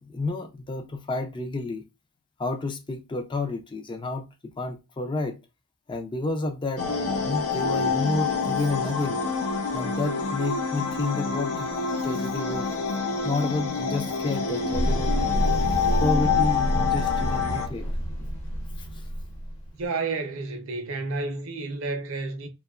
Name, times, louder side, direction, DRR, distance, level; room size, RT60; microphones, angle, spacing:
voice 1, 0.0-1.8 2.4-5.4 5.9-9.2 9.7-11.7 12.0-12.7 13.2-17.9 18.8-19.1, left 2 dB, 20° left, 0.3 m, -30 dB
sound 1, 6.8-17.7, left 5 dB, 90° left, 0.6 m, -27 dB
sound 2, 14.7-19.9, equal, 60° left, 0.9 m, -28 dB
voice 2, 19.7-22.5, right 3 dB, 60° right, 0.5 m, -31 dB
2.8 x 2.2 x 2.3 m
head